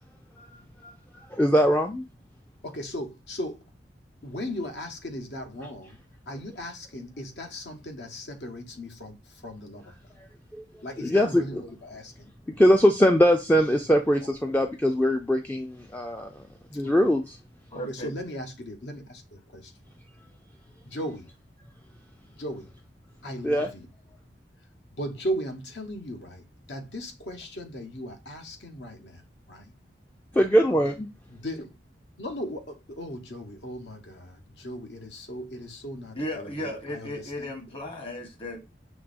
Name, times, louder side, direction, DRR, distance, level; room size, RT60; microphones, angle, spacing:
voice 1, 1.3-2.0 10.5-10.6 11.0-11.6 12.6-16.4 16.7-17.4 23.4-23.7 30.3-31.1, equal, 10° left, 0.4 m, -22 dB
voice 2, 2.6-3.6 4.2-6.0 6.3-9.9 10.8-12.3 17.9-19.7 20.8-21.3 22.4-22.7 23.2-23.9 24.9-29.2 29.5-29.7 31.3-31.8 32.2-37.1, equal, 70° left, 1.0 m, -37 dB
voice 3, 17.7-18.1 36.1-38.7, left 1 dB, 30° left, 1.1 m, -35 dB
6.0 x 3.0 x 2.5 m
head